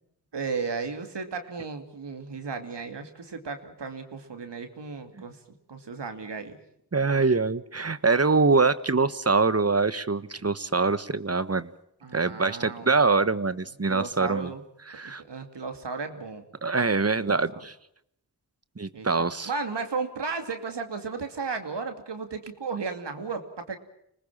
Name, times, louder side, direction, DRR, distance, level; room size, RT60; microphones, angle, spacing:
voice 1, 0.3-6.6 7.1-7.3 12.0-12.9 13.9-14.6 15.0-16.5 17.2-17.6 18.9-23.8, right 4 dB, 80° right, 6 dB, 2.7 m, -35 dB
voice 2, 6.9-11.7 12.1-14.5 14.9-15.2 16.6-17.7 18.8-19.5, right 4 dB, 35° right, 14 dB, 1.3 m, -24 dB
26.0 x 20.0 x 7.4 m, 0.74 s
cardioid pair, 45°, 41 cm